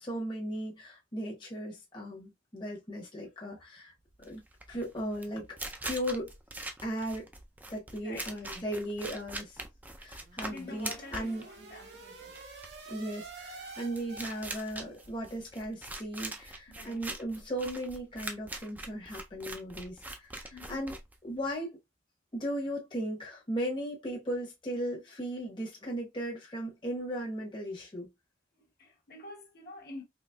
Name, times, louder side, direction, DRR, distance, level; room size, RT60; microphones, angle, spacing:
voice 1, 0.0-3.9 4.2-5.5 5.8-6.4 6.8-7.3 7.7-9.6 10.0-11.4 12.9-20.9 21.2-21.8 22.3-28.1, equal, 25° left, 0.8 m, -37 dB
sound 1, 4.1-21.5, right 2 dB, 10° right, 0.4 m, -43 dB
voice 2, 8.0-8.7 10.4-12.4 16.7-17.1 20.5-20.9 28.6-30.0, left 2 dB, 55° left, 1.0 m, -48 dB
sound 2, 10.1-15.1, right 3 dB, 70° right, 0.9 m, -49 dB
4.0 x 2.9 x 2.2 m
head